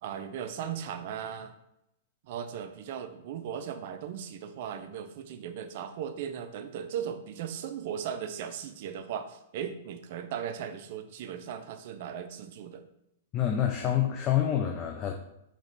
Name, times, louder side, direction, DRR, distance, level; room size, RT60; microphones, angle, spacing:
voice 1, 0.0-1.5 2.2-12.8, right 8 dB, 55° right, 9 dB, 0.4 m, -37 dB
voice 2, 13.3-15.1, left 10 dB, 30° left, 3 dB, 0.4 m, -27 dB
4.0 x 3.0 x 3.2 m, 0.83 s
hypercardioid pair, 135°, 0 cm